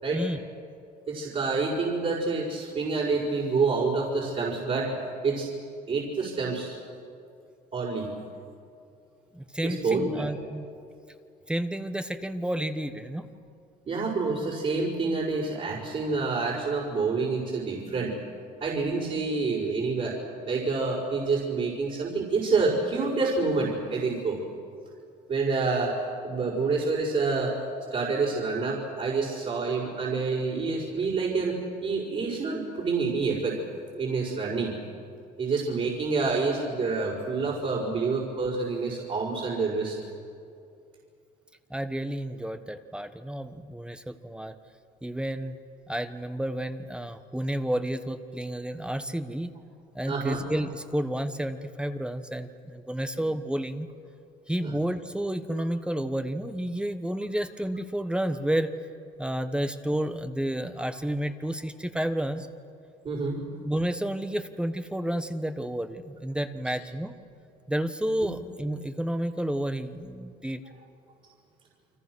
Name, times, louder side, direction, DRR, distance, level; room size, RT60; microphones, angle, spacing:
voice 1, 1.1-5.0 5.2-5.5 5.9-6.8 7.7-8.1 9.6-10.3 13.9-18.2 18.6-20.2 20.5-24.4 25.3-27.6 27.9-33.6 34.0-34.8 35.4-40.0 50.1-50.5 54.6-54.7 63.0-63.4, right 4 dB, 45° right, -5 dB, 5.2 m, -27 dB
voice 2, 9.3-10.7 11.5-13.3 41.7-44.5 45.0-45.6 45.9-49.5 49.9-53.9 54.5-58.7 59.2-62.5 63.6-67.1 67.7-70.6, right 1 dB, 5° right, 9 dB, 1.2 m, -31 dB
29.5 x 24.5 x 6.3 m, 2.5 s
cardioid pair, 110°, 17 cm